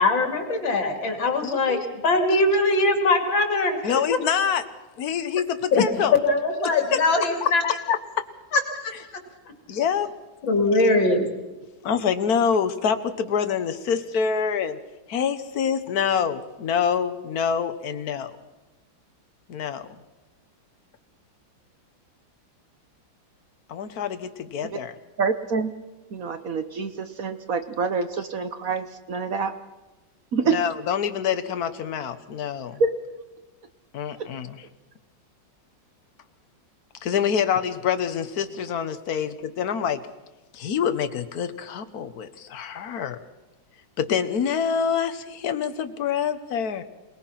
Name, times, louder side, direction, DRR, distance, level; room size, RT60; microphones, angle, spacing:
voice 1, 0.0-4.0 5.7-5.8 6.1-7.6 8.5-8.9 10.5-11.3, left 2 dB, 85° left, 5 dB, 3.4 m, -21 dB
voice 2, 1.4-1.9 2.3-2.4 3.8-4.6 5.0-6.1 6.6-7.0 7.4-8.0 9.7-10.1 11.8-14.8 15.1-18.4 19.5-19.8 23.7-24.9 30.4-32.8 33.9-34.7 37.0-40.0 40.5-43.2 44.0-46.8, left 7 dB, 55° left, 10 dB, 1.5 m, -26 dB
voice 3, 25.2-25.7 26.1-29.5 30.3-30.5 32.8-32.9, right 5 dB, 55° right, 10 dB, 1.2 m, -26 dB
27.0 x 19.0 x 5.8 m, 1.1 s
omnidirectional pair, 2.0 m